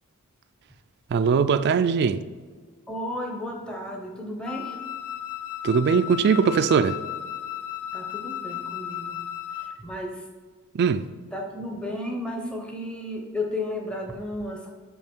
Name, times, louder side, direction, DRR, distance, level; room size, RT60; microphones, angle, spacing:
voice 1, 1.1-2.2 5.6-7.0 10.7-11.1, right 6 dB, 50° right, 0.3 m, -21 dB
voice 2, 2.9-4.8 7.9-9.2 9.6-10.2 11.3-14.7, left 1 dB, 5° left, 0.6 m, -33 dB
Wind instrument woodwind instrument, 4.5-9.8, left 10 dB, 70° left, 0.4 m, -35 dB
5.8 x 5.3 x 4.5 m
head